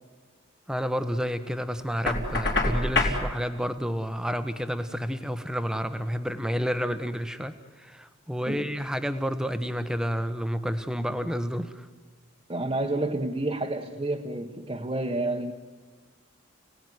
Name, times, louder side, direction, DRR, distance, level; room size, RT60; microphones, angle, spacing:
voice 1, 0.7-11.9, equal, 5° right, 10 dB, 1.1 m, -30 dB
Knock, 2.1-3.2, left 2 dB, 55° left, 4.3 m, -25 dB
voice 2, 12.5-15.5, right 2 dB, 25° right, 0 dB, 1.2 m, -29 dB
30.0 x 18.0 x 9.6 m, 1.4 s
head